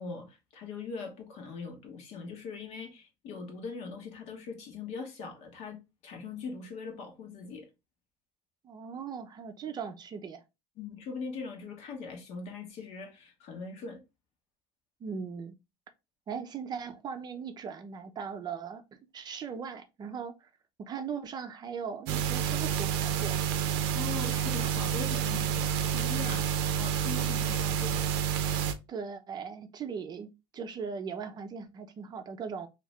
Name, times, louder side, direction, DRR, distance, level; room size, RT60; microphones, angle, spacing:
voice 1, 0.0-7.7 10.8-14.0 23.9-28.1, left 4 dB, 60° left, 1.2 m, -41 dB
voice 2, 8.6-10.4 15.0-15.5 16.3-18.8 19.1-20.5 20.8-23.4 28.9-32.7, right 6 dB, 35° right, 0.5 m, -39 dB
sound 1, 22.1-28.7, right 8 dB, 80° right, 0.5 m, -29 dB
2.8 x 2.6 x 3.2 m
supercardioid pair, 110°, 13 cm